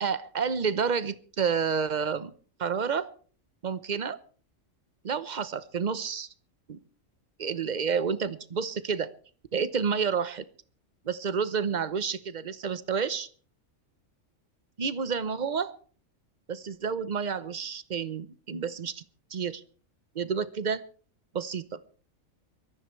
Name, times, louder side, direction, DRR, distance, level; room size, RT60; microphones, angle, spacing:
voice 1, 0.0-2.3 2.6-3.1 3.6-4.2 5.0-6.3 6.7-6.8 7.4-9.1 9.5-10.5 11.0-13.3 14.8-15.7 16.5-19.0 19.3-19.6 20.1-20.8 21.3-21.8, right 6 dB, 40° right, 15 dB, 0.9 m, -29 dB
23.5 x 14.0 x 3.2 m, 0.41 s
omnidirectional pair, 1.4 m